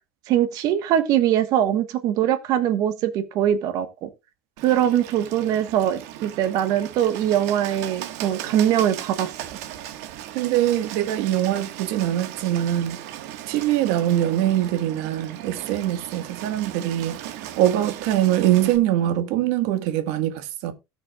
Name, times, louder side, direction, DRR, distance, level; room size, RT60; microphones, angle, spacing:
voice 1, 0.3-4.1 4.6-9.3, right 10 dB, 50° right, 1.4 m, -22 dB
Bird, 4.6-18.8, right 12 dB, 85° right, 1.7 m, -37 dB
voice 2, 10.3-13.0 13.5-17.2 17.6-20.7, right 12 dB, 70° right, 1.7 m, -23 dB
18.0 x 6.2 x 2.4 m
cardioid pair, 170°, 8 cm